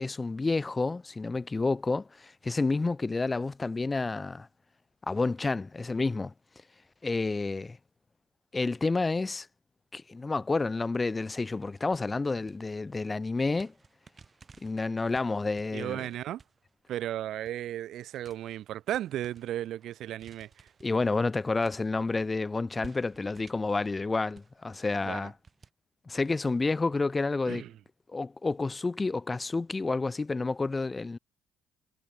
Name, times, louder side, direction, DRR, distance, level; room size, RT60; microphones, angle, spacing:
voice 1, 0.0-4.5 5.1-6.3 7.0-7.8 8.5-9.5 9.9-13.7 14.6-16.0 20.8-25.3 26.1-27.6 28.1-31.2, left 3 dB, 25° left, 0.4 m, -29 dB
sound 1, 10.9-13.2 13.5-22.3 22.8-25.7, right 5 dB, 35° right, 3.3 m, -58 dB
voice 2, 15.7-16.4 16.9-20.7 25.0-25.3 27.5-27.7, right 12 dB, 60° right, 0.6 m, -35 dB
hypercardioid pair, 50°, 0 cm